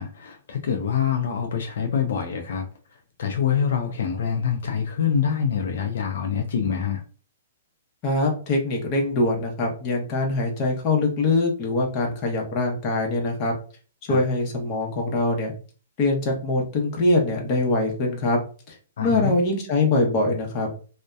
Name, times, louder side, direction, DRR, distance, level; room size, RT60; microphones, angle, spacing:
voice 1, 0.0-2.7 3.2-7.0 14.1-14.2 19.0-19.3, left 7 dB, 70° left, 0.4 m, -25 dB
voice 2, 8.0-13.5 14.0-15.5 16.0-18.4 18.7-18.8 19.0-20.7, left 2 dB, 30° left, 0.7 m, -23 dB
2.6 x 2.1 x 2.2 m
hypercardioid pair, 155°, 0 cm